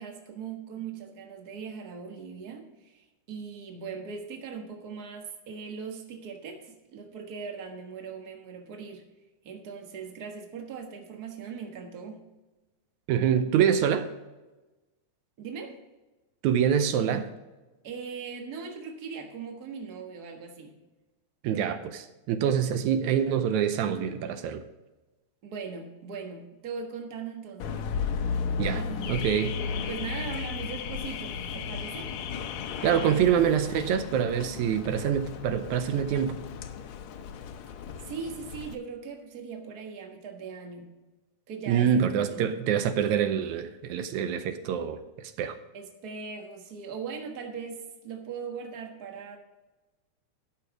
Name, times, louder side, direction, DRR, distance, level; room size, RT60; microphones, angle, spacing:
voice 1, 0.0-9.0 9.4-12.2 15.4-15.7 17.8-20.7 25.4-27.8 28.7-29.3 29.7-32.1 38.0-40.9 41.5-41.9 42.3-42.6 45.7-49.4, right 5 dB, 45° right, 3 dB, 1.4 m, -40 dB
voice 2, 13.1-14.1 16.4-17.3 21.4-24.6 28.6-28.8 29.1-29.5 32.8-36.4 41.7-45.6, right 8 dB, 80° right, 9 dB, 2.0 m, -25 dB
Car / Alarm, 27.6-38.8, left 6 dB, 75° left, 1.9 m, -35 dB
13.5 x 5.9 x 4.8 m, 1.1 s
omnidirectional pair, 3.5 m